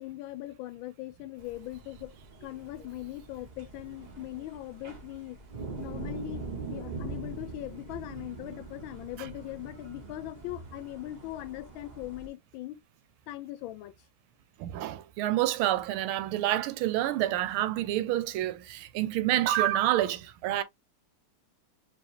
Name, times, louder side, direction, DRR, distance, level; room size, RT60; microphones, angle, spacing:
voice 1, 0.0-2.1 2.4-5.4 5.8-6.4 6.7-12.8 13.3-13.9, left 16 dB, 75° left, 1.3 m, -40 dB
sound 1, 1.4-12.3, right 3 dB, 70° right, 0.4 m, -43 dB
voice 2, 14.6-20.6, right 13 dB, 85° right, 1.5 m, -28 dB
4.8 x 2.9 x 2.9 m
omnidirectional pair, 2.3 m